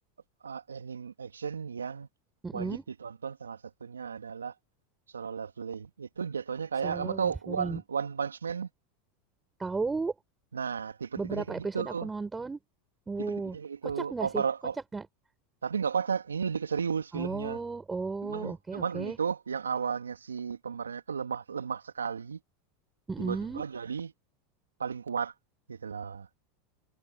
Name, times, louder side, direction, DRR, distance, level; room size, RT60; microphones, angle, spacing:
voice 1, 0.4-2.1 2.5-4.5 5.1-8.7 10.5-12.1 13.2-14.8 15.6-17.6 18.2-22.4 23.2-24.1 24.8-25.3 25.7-26.3, right 6 dB, 85° right, 2.9 m, -34 dB
voice 2, 2.4-2.8 6.8-7.8 9.6-10.1 11.2-12.6 13.1-13.6 13.8-14.4 14.9-15.1 17.1-19.2 23.1-23.6, right 4 dB, 15° right, 6.8 m, -34 dB
hypercardioid pair, 85°, 0 cm